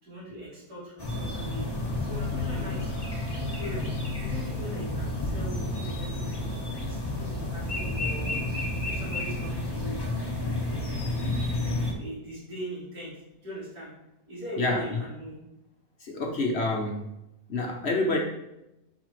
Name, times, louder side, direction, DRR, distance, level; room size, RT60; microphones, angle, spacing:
voice 1, 0.0-1.7 2.0-3.9 4.2-6.4 6.8-11.1 11.5-13.2 13.4-13.9 14.3-15.4, right 1 dB, 75° right, -8 dB, 3.9 m, -41 dB
sound 1, 1.0-11.9, left 2 dB, 15° left, 1.3 m, -31 dB
voice 2, 16.0-17.0 17.5-18.2, left 2 dB, 50° left, 1 dB, 1.0 m, -27 dB
11.5 x 4.9 x 3.1 m, 0.90 s
omnidirectional pair, 1.7 m